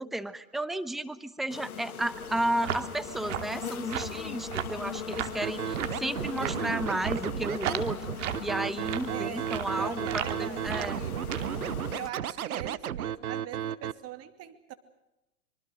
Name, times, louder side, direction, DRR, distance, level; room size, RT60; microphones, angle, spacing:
voice 1, 0.0-11.0, right 1 dB, ahead, 14 dB, 1.0 m, -33 dB
sound 1, 1.5-12.1, left 8 dB, 80° left, 1.3 m, -40 dB
sound 2, 2.1-11.7, right 10 dB, 60° right, 2.8 m, -37 dB
Scratching (performance technique), 5.4-13.9, right 10 dB, 80° right, 1.0 m, -33 dB
voice 2, 9.1-9.5 9.8-11.4 11.8-14.7, right 11 dB, 35° right, 9 dB, 2.5 m, -42 dB
25.5 x 25.0 x 6.4 m, 0.97 s
hypercardioid pair, 105°, 43 cm